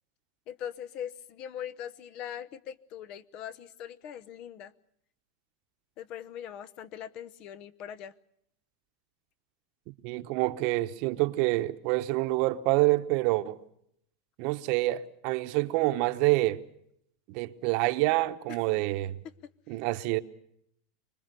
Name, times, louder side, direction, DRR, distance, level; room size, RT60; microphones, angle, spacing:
voice 1, 0.5-4.7 6.0-8.1 18.5-18.6 19.7-19.8 20.1-20.2, left 9 dB, 40° left, 0.9 m, -41 dB
voice 2, 10.0-13.6 14.4-16.6 17.3-19.2 19.7-20.2, right 19 dB, 50° right, 1.1 m, -27 dB
25.0 x 21.0 x 6.8 m
supercardioid pair, 150°, 2 cm